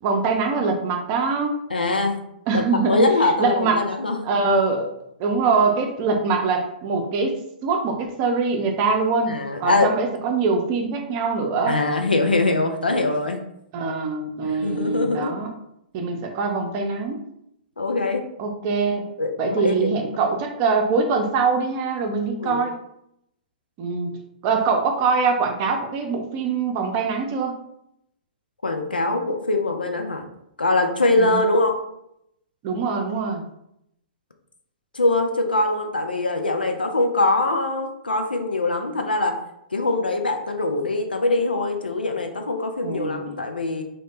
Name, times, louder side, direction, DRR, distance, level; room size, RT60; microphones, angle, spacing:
voice 1, 0.0-1.6 2.5-3.0 3.4-3.9 4.2-4.9 5.2-11.8 13.7-15.5 15.9-17.2 18.4-19.1 19.4-22.8 23.8-24.1 24.4-27.6 31.2-31.4 32.6-33.4 42.8-43.4, right 4 dB, 35° right, 3 dB, 0.4 m, -23 dB
voice 2, 1.7-2.2 2.5-4.2 9.3-9.9 11.7-13.4 14.6-15.3 17.8-18.2 19.2-20.0 22.4-22.6 28.6-30.2 30.6-31.8 34.9-39.4 39.7-43.8, left 2 dB, 85° left, 4 dB, 0.4 m, -22 dB
2.0 x 2.0 x 3.0 m, 0.77 s
figure-of-eight pair, 115°, 5 cm